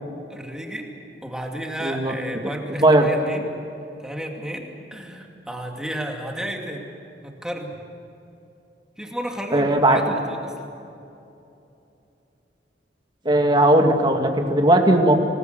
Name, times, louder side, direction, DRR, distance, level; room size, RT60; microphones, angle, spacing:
voice 1, 0.3-0.9 1.2-3.5 4.0-6.9 7.2-7.8 9.0-10.7, equal, 5° right, 1 dB, 2.6 m, -32 dB
voice 2, 1.8-2.1 2.7-3.1 9.5-10.0 13.3-15.2, right 1 dB, 25° right, 3 dB, 2.3 m, -17 dB
26.5 x 19.0 x 8.1 m, 2.8 s
head